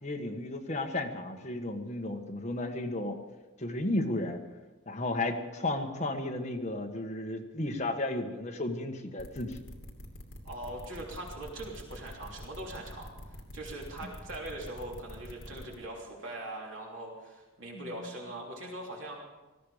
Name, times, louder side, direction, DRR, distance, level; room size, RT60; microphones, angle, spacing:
voice 1, 0.0-3.2 3.6-4.4 4.9-9.6 17.7-18.0, left 2 dB, 30° left, 3 dB, 1.5 m, -33 dB
sound 1, 9.2-15.8, equal, 60° left, 2.7 m, -46 dB
voice 2, 10.4-19.2, right 1 dB, 60° right, -2 dB, 3.2 m, -41 dB
19.0 x 14.5 x 5.1 m, 1.2 s
head